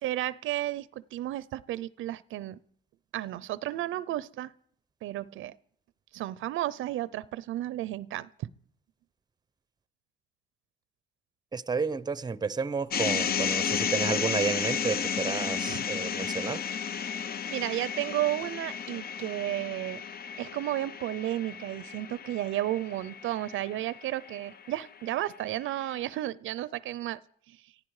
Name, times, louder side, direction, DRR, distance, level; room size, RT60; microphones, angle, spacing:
voice 1, 0.0-2.6 3.1-4.5 5.0-5.5 6.1-8.5 15.7-15.8 17.1-20.0 20.4-27.2 27.5-27.6, right 14 dB, 80° right, 0.6 m, -33 dB
voice 2, 11.5-16.6, right 5 dB, 20° right, 0.6 m, -31 dB
sound 1, 12.9-25.0, left 7 dB, 50° left, 0.7 m, -33 dB
17.5 x 15.0 x 4.8 m
cardioid pair, 90°, 20 cm